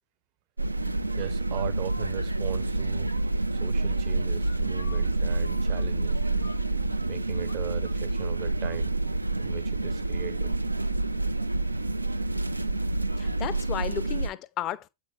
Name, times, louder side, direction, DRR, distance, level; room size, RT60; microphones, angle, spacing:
sound 1, 0.6-14.3, right 2 dB, 85° right, 0.3 m, -28 dB
voice 1, 1.2-3.2 3.5-6.2 7.0-9.0 9.4-10.6, right 14 dB, 45° right, 0.6 m, -39 dB
sound 2, 1.5-2.1 4.4-7.1 7.4-7.6 7.8-8.8, left 3 dB, 80° left, 0.5 m, -49 dB
voice 2, 13.2-14.9, left 12 dB, 35° left, 0.5 m, -33 dB
8.2 x 4.4 x 3.1 m
figure-of-eight pair, 90°, 0 cm